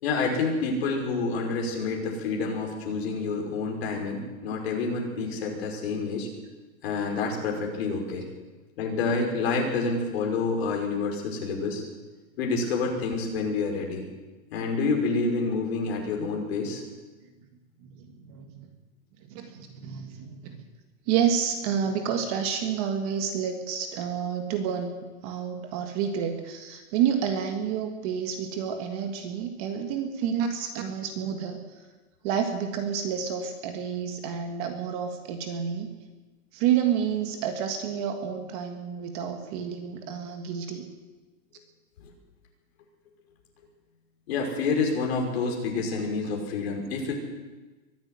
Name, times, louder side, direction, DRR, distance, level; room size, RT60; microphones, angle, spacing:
voice 1, 0.0-6.3 6.8-8.3 8.8-11.8 12.4-14.0 14.5-16.8 42.0-42.1 44.3-47.1, left 4 dB, 45° left, 1 dB, 5.6 m, -28 dB
voice 2, 17.8-18.7 19.2-20.6 21.1-31.8 32.2-35.9 36.5-40.8, right 8 dB, 25° right, 6 dB, 1.7 m, -29 dB
23.0 x 12.5 x 9.5 m, 1.2 s
hypercardioid pair, 170°, 42 cm